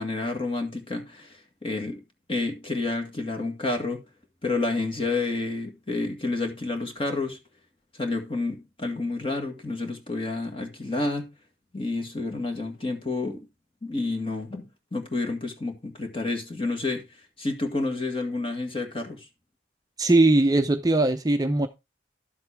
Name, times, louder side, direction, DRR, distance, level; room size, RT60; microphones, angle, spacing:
voice 1, 0.0-2.0 2.3-4.0 4.4-7.4 7.9-11.3 11.7-13.5 13.8-17.0 17.4-19.3, left 3 dB, 30° left, 1.9 m, -29 dB
voice 2, 20.0-21.7, right 2 dB, 20° right, 0.6 m, -20 dB
11.5 x 7.7 x 3.5 m
head